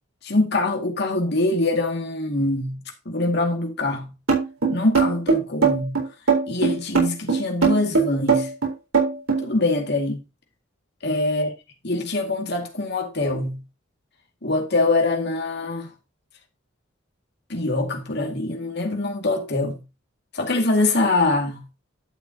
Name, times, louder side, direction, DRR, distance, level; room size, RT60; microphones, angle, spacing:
voice 1, 0.2-2.8 3.1-4.1 4.7-6.0 6.5-8.5 9.4-10.2 11.0-11.5 11.8-13.6 14.4-15.9 17.5-19.8 20.3-21.6, left 2 dB, 55° left, 2.2 m, -23 dB
sound 1, 4.3-9.4, right 5 dB, 90° right, 4.2 m, -19 dB
11.5 x 7.0 x 2.9 m
head